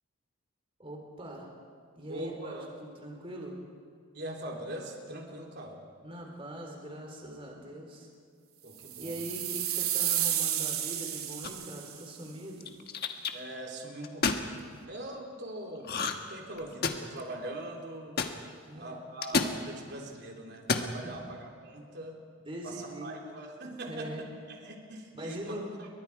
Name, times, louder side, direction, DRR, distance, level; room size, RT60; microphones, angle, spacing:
voice 1, 0.8-1.5 2.0-3.6 6.0-8.1 9.0-12.7 18.6-19.0 21.0-21.2 22.4-23.1 23.9-24.2 25.1-25.7, right 1 dB, 25° right, 0 dB, 3.8 m, -42 dB
voice 2, 2.1-2.8 4.1-5.8 8.6-9.2 13.3-18.2 18.8-22.2 22.6-26.0, right 1 dB, 50° right, 0 dB, 3.5 m, -42 dB
sound 1, 8.8-12.0, right 11 dB, 80° right, 2.7 m, -31 dB
sound 2, 11.4-11.8 12.6-13.3 14.0-14.4 15.8-16.3 16.6-17.2 18.2-18.3 19.2-19.6 20.5-20.9, left 4 dB, 45° left, 1.4 m, -29 dB
30.0 x 23.5 x 4.8 m, 2.2 s
head